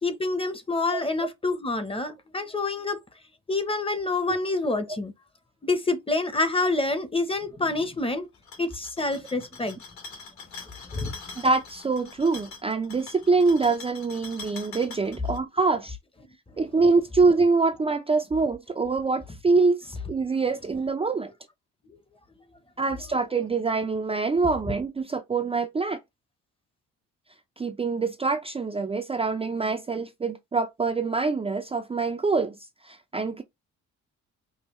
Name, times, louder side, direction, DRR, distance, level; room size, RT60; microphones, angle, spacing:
voice 1, 0.0-3.0 3.5-5.1 5.6-8.3 8.6-9.8 10.9-11.2, left 3 dB, 20° left, 0.9 m, -27 dB
sound 1, 8.3-15.4, left 4 dB, 70° left, 2.2 m, -44 dB
voice 2, 11.4-16.0 16.6-21.3 22.8-26.0 27.6-32.5 32.8-33.4, right 4 dB, 20° right, 0.5 m, -25 dB
5.4 x 2.2 x 3.0 m
cardioid pair, 90°, 30 cm